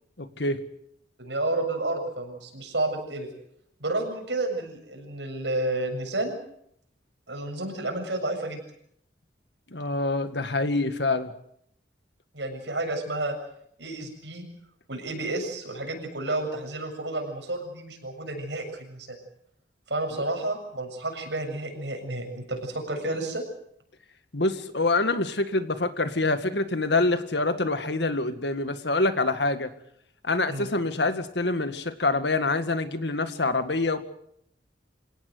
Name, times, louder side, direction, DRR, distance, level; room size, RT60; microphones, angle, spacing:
voice 1, 0.2-0.6 9.7-11.3 24.3-29.7 30.2-34.0, left 2 dB, 70° left, 10 dB, 1.9 m, -26 dB
voice 2, 1.2-3.3 3.8-6.4 7.3-8.6 12.3-13.4 13.8-14.4 14.9-19.2 19.9-23.4 30.5-30.7, right 2 dB, 75° right, 4 dB, 7.3 m, -31 dB
27.0 x 18.0 x 8.0 m, 0.70 s
head